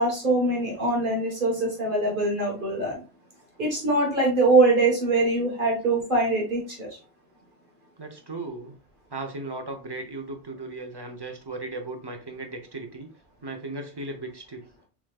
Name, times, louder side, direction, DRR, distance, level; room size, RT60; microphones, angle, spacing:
voice 1, 0.0-3.0 3.6-6.9, right 2 dB, 45° right, -2 dB, 1.5 m, -23 dB
voice 2, 8.0-8.7 9.1-13.1 13.4-14.6, right 2 dB, 25° right, 4 dB, 0.7 m, -36 dB
5.9 x 3.7 x 2.3 m, 0.35 s
omnidirectional pair, 1.2 m